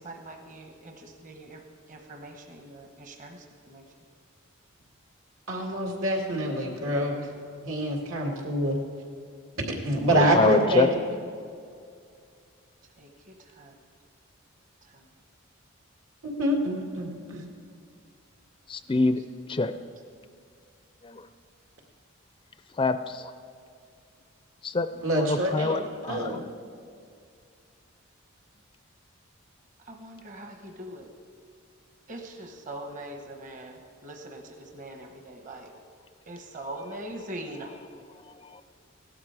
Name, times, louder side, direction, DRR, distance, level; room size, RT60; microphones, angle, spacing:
voice 1, 0.0-3.9 9.6-10.1 13.0-13.7 14.8-15.1 18.9-19.1 29.8-31.1 32.1-35.7 36.3-37.7, right 1 dB, 40° right, 3 dB, 1.0 m, -42 dB
voice 2, 5.5-7.3 7.6-8.8 9.8-10.9 16.4-17.4 25.0-25.8 26.1-26.4, right 1 dB, 75° right, 1 dB, 2.3 m, -26 dB
voice 3, 10.1-10.9 18.7-19.2 19.5-19.7 21.0-21.3 22.8-23.3 24.6-24.9 25.2-26.4 38.4-38.6, left 3 dB, 25° left, 10 dB, 0.4 m, -26 dB
17.0 x 12.0 x 4.7 m, 2.3 s
head